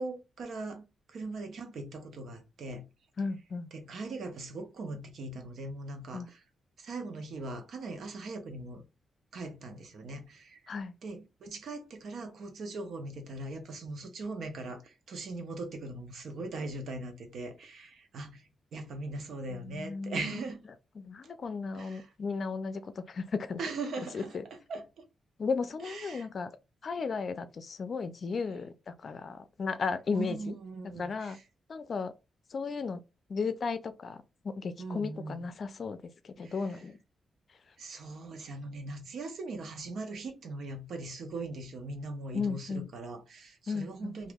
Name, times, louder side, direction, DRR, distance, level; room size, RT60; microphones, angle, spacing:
voice 1, 0.0-2.9 3.7-6.4 6.8-8.8 9.3-10.6 11.0-20.6 21.7-22.1 23.6-25.0 25.8-26.3 30.1-31.4 34.8-35.4 36.4-36.6 37.8-44.3, right 2 dB, 70° right, 0.9 m, -40 dB
voice 2, 3.2-3.7 6.1-6.3 10.7-10.9 19.5-20.4 21.0-23.6 24.1-24.4 25.4-26.5 26.8-30.6 31.0-31.4 31.7-32.1 32.5-33.0 33.3-37.0 42.3-42.9 43.7-44.2, left 5 dB, 50° left, 0.5 m, -35 dB
2.9 x 2.5 x 3.5 m
cardioid pair, 110°, 0 cm